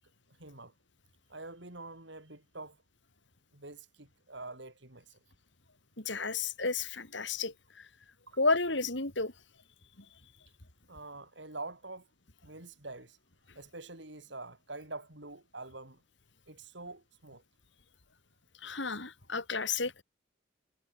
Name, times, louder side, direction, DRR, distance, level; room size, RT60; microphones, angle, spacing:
voice 1, 0.4-0.7 1.3-2.8 3.5-5.2 8.3-8.4 10.9-12.1 12.4-13.2 13.5-16.0 16.5-17.4, right 2 dB, 60° right, 4.7 m, -46 dB
voice 2, 6.0-7.9 8.4-9.3 10.0-10.1 18.6-19.9, left 3 dB, 65° left, 3.6 m, -32 dB
head